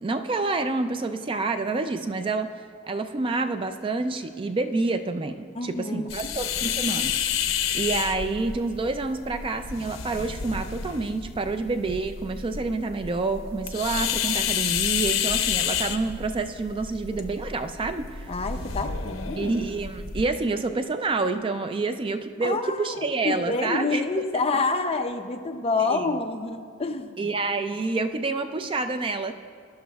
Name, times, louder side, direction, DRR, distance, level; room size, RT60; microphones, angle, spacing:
voice 1, 0.0-18.3 19.4-24.0 25.9-26.1 27.2-29.3, right 3 dB, 25° right, 8 dB, 0.3 m, -28 dB
voice 2, 5.6-6.3 18.3-19.5 22.4-27.3, left 3 dB, 30° left, 6 dB, 0.6 m, -28 dB
sound 1, 6.1-20.3, left 8 dB, 80° left, 0.7 m, -30 dB
21.0 x 11.0 x 2.3 m, 2.1 s
head